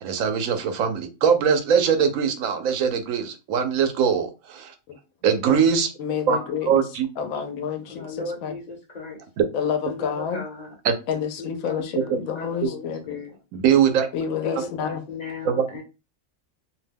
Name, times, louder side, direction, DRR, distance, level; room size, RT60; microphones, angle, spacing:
voice 1, 0.0-4.7 5.2-5.9 6.3-6.4 6.7-7.1 10.8-11.0 12.6-12.7 13.5-14.1 15.4-15.6, right 7 dB, 80° right, 1.0 m, -21 dB
voice 2, 6.0-6.8 7.2-8.5 9.5-10.4 11.1-13.2 14.1-15.0, left 7 dB, 85° left, 1.0 m, -29 dB
voice 3, 7.9-9.2 9.9-10.7 11.1-13.3 14.4-15.8, left 4 dB, 40° left, 0.7 m, -36 dB
2.7 x 2.1 x 3.3 m
omnidirectional pair, 1.4 m